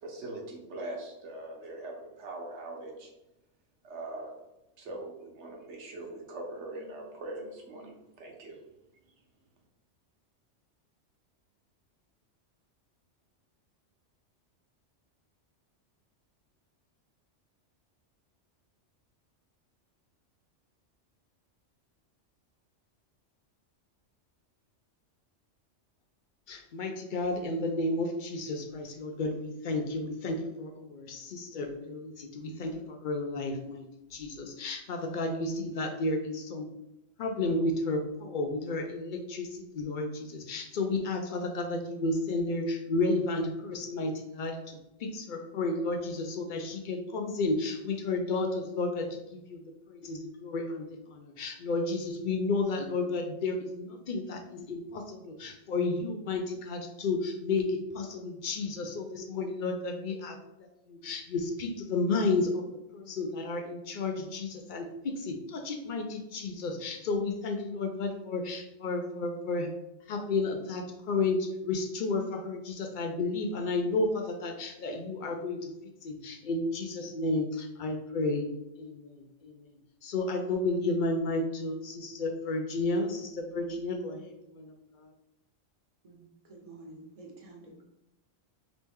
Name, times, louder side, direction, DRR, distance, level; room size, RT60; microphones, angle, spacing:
voice 1, 0.0-3.1 3.8-4.3 4.8-8.6, right 2 dB, 70° right, 1 dB, 1.1 m, -41 dB
voice 2, 26.5-33.9 34.1-36.7 37.2-60.4 60.9-62.7 62.9-69.7 70.1-75.7 76.0-78.5 78.8-79.7 80.0-85.1, left 3 dB, 60° left, 4 dB, 0.5 m, -32 dB
voice 3, 86.0-87.8, right 2 dB, 35° right, 0 dB, 0.7 m, -50 dB
3.1 x 3.1 x 3.4 m, 0.90 s
omnidirectional pair, 1.2 m